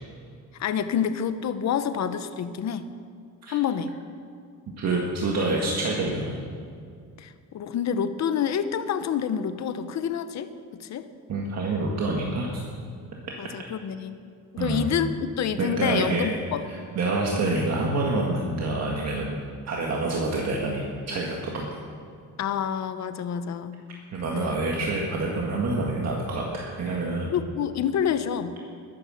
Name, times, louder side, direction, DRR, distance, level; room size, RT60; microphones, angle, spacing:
voice 1, 0.6-2.9 3.5-3.9 7.2-11.1 13.4-14.2 14.5-16.6 22.4-23.8 24.3-24.6 27.3-28.6, left 8 dB, 50° left, 11 dB, 0.8 m, -28 dB
voice 2, 4.8-6.4 11.3-12.6 14.6-14.9 15.6-16.3 16.7-19.4 19.7-21.7 24.1-27.3, right 2 dB, 50° right, -2 dB, 1.9 m, -27 dB
21.5 x 9.6 x 6.4 m, 2.3 s
cardioid pair, 175°, 34 cm